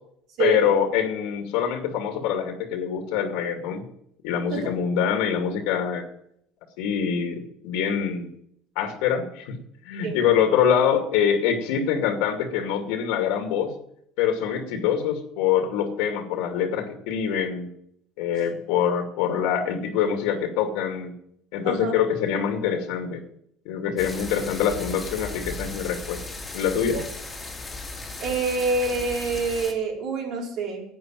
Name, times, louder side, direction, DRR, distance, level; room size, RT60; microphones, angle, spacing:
voice 1, 0.4-3.8 4.2-6.0 6.8-8.3 8.8-9.6 9.8-13.7 14.2-17.7 18.2-21.1 21.5-23.2 23.7-26.2 26.5-27.0, left 8 dB, 80° left, 4 dB, 2.4 m, -24 dB
sound 1, 24.0-29.7, left 2 dB, 10° left, 2.5 m, -36 dB
voice 2, 28.2-30.8, right 4 dB, 55° right, -1 dB, 4.8 m, -26 dB
11.0 x 9.1 x 9.1 m, 0.72 s
cardioid pair, 155°, 0 cm